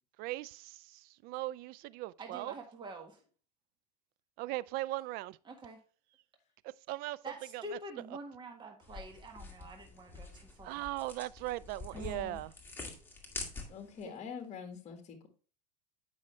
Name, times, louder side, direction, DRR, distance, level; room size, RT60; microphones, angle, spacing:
voice 1, 0.2-2.5 4.4-5.3 6.6-7.2 7.5-7.8 10.6-12.5, right 17 dB, 45° right, 0.4 m, -39 dB
voice 2, 2.2-3.2 5.5-5.8 7.2-10.8 11.9-12.0 14.0-14.3, right 1 dB, 20° right, 1.6 m, -47 dB
sound 1, 8.8-14.0, left 3 dB, 10° left, 2.0 m, -46 dB
voice 3, 11.9-12.4 13.7-15.3, left 6 dB, 30° left, 1.7 m, -45 dB
8.8 x 5.6 x 3.2 m
hypercardioid pair, 105°, 21 cm